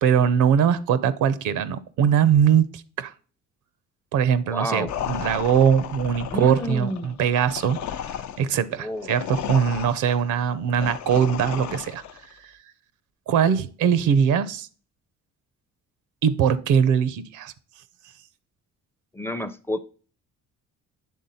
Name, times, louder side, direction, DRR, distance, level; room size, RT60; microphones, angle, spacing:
voice 1, 0.0-3.1 4.1-7.8 8.4-12.0 13.3-14.7 16.2-17.5, right 8 dB, 85° right, 15 dB, 0.6 m, -21 dB
voice 2, 4.5-4.9 6.3-7.2 8.8-9.1 19.1-19.8, left 1 dB, 10° left, 13 dB, 0.5 m, -30 dB
sound 1, 4.9-12.3, left 9 dB, 70° left, 0.6 m, -34 dB
8.5 x 3.6 x 4.1 m, 0.40 s
cardioid pair, 90°, 30 cm